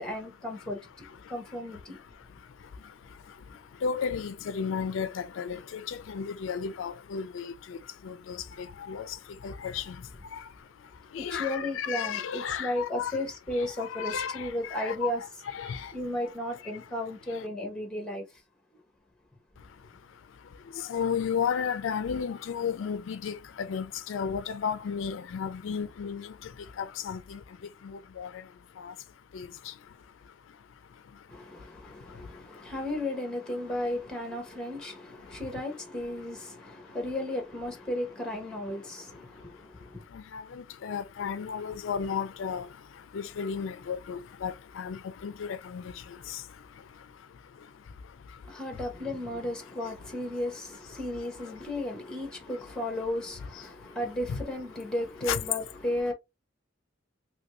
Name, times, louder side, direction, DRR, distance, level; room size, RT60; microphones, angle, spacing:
voice 1, 0.0-2.0 11.2-15.2 15.6-18.4 31.3-40.0 48.4-56.1, left 1 dB, 5° left, 0.8 m, -34 dB
voice 2, 3.8-7.8 8.0-9.2 9.4-10.0 10.3-10.4 11.1-13.1 13.6-15.1 15.5-15.9 20.9-26.3 26.8-27.4 27.8-28.3 28.8-28.9 29.3-29.5 40.3-42.7 43.1-45.8 46.3-46.4 54.3-54.4 55.3-55.4, left 7 dB, 70° left, 0.4 m, -33 dB
3.0 x 2.6 x 2.9 m
head